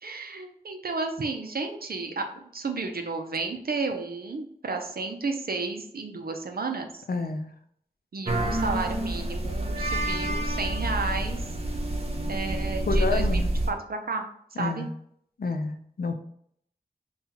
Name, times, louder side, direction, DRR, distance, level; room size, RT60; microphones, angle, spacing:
voice 1, 0.0-2.3 2.5-7.0 8.1-11.4 12.3-13.4 13.7-14.2 14.6-14.9, right 3 dB, 70° right, 5 dB, 0.6 m, -32 dB
voice 2, 7.1-7.5 12.9-13.5 14.6-14.9 15.4-16.1, left 3 dB, 75° left, 6 dB, 0.5 m, -29 dB
sound 1, 8.2-13.7, right 1 dB, 40° right, 0.8 m, -28 dB
5.5 x 2.4 x 2.8 m, 0.67 s
wide cardioid pair, 55°, 16 cm